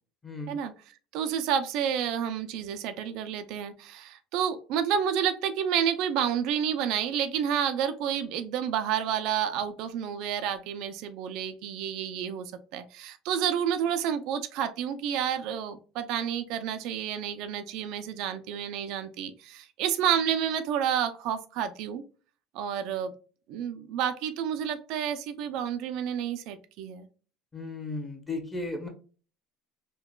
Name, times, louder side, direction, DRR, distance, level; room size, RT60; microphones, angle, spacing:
voice 1, 0.2-0.6 27.5-28.9, left 2 dB, 15° left, 3 dB, 1.0 m, -35 dB
voice 2, 1.1-22.0 22.5-23.1 23.5-27.1, right 8 dB, 70° right, 9 dB, 0.3 m, -30 dB
3.7 x 2.2 x 2.2 m, 0.37 s
supercardioid pair, 85°, 0 cm